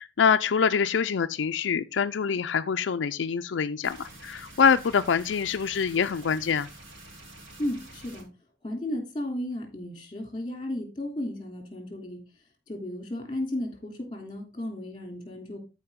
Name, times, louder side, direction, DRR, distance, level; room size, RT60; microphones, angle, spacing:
voice 1, 0.0-6.7, left 6 dB, 80° left, 0.4 m, -25 dB
sound 1, 3.8-8.2, right 1 dB, 90° right, 3.3 m, -48 dB
voice 2, 7.6-8.3 8.6-12.2 12.7-15.6, left 1 dB, 25° left, 3.0 m, -34 dB
13.5 x 4.9 x 3.6 m
head